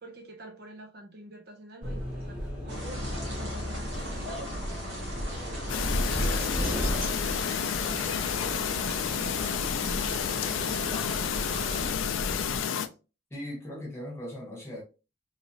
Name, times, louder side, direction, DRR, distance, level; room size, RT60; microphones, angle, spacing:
voice 1, 0.0-5.7 6.1-9.6 9.9-12.8, right 2 dB, 50° right, 0.6 m, -47 dB
sound 1, 1.8-12.6, equal, 5° right, 1.1 m, -35 dB
sound 2, 2.7-11.9, equal, 70° right, 1.4 m, -39 dB
Chirp tweet, 5.7-12.9, left 8 dB, 85° left, 0.4 m, -30 dB
voice 2, 13.3-14.8, equal, 15° left, 1.1 m, -38 dB
3.2 x 2.8 x 2.7 m
head